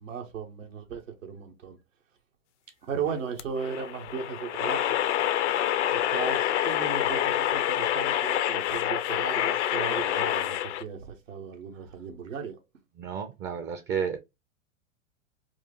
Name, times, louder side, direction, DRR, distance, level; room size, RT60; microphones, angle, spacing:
voice 1, 0.0-1.8 2.9-5.0 5.9-12.6, right 6 dB, 80° right, 1.3 m, -36 dB
sound 1, 3.4-10.8, left 11 dB, 65° left, 0.7 m, -27 dB
voice 2, 13.0-14.2, right 7 dB, 30° right, 0.6 m, -32 dB
4.7 x 2.4 x 3.0 m
hypercardioid pair, 105°, 38 cm